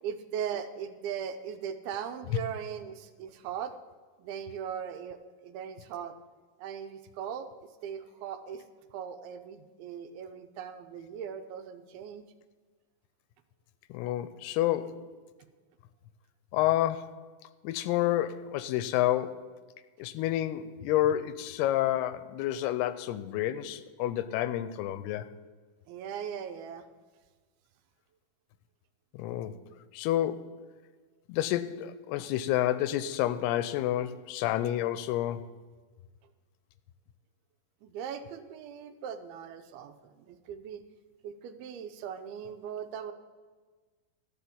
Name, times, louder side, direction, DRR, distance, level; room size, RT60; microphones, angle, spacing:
voice 1, 0.0-3.7 4.2-6.1 6.6-8.6 8.9-12.2 25.9-26.9 37.8-40.8 41.2-43.1, right 8 dB, 85° right, 2.5 m, -39 dB
voice 2, 13.9-15.0 16.5-17.2 17.6-19.4 20.0-25.3 29.1-29.5 29.9-30.5 31.3-35.5, left 13 dB, 90° left, 2.6 m, -29 dB
13.0 x 5.9 x 8.5 m
omnidirectional pair, 4.6 m